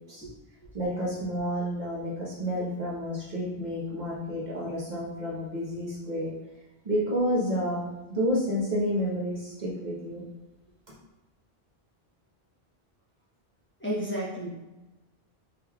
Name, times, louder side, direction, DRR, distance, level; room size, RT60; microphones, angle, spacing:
voice 1, 0.7-6.3 6.8-10.2, equal, 45° right, -7 dB, 1.1 m, -30 dB
voice 2, 13.8-14.5, equal, 10° left, -9 dB, 1.0 m, -31 dB
5.2 x 3.2 x 2.3 m, 1.1 s
omnidirectional pair, 1.0 m